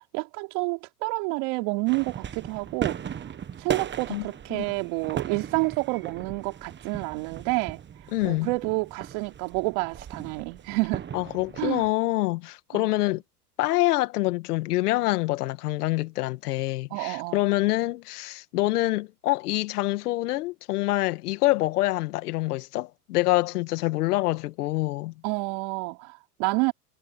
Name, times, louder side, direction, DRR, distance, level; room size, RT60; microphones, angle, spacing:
voice 1, 0.1-3.2 3.6-7.8 8.2-11.1 11.6-11.9 12.7-12.9 16.9-17.5 25.2-26.7, right 28 dB, 60° right, 3.3 m, -29 dB
sound 1, 1.9-11.9, right 8 dB, 25° right, 1.4 m, -37 dB
voice 2, 4.1-4.6 8.1-8.5 11.1-13.2 13.6-25.1, left 18 dB, 70° left, 2.2 m, -26 dB
hypercardioid pair, 105°, 47 cm